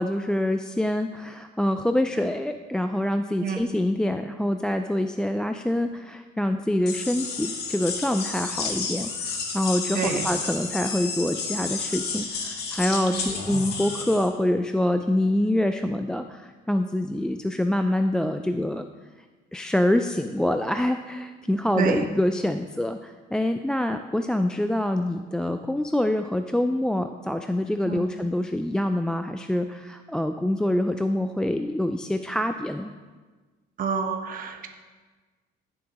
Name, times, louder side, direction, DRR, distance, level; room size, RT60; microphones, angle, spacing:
voice 1, 0.0-18.9 19.5-32.9, left 1 dB, 5° left, 7 dB, 0.3 m, -26 dB
sound 1, 6.9-14.3, left 4 dB, 55° left, 1.7 m, -31 dB
voice 2, 9.9-10.3 13.1-13.3 21.8-22.0 27.9-28.1 33.8-34.7, right 6 dB, 45° right, 4 dB, 1.0 m, -28 dB
15.5 x 7.3 x 3.0 m, 1.4 s
cardioid pair, 110°, 19 cm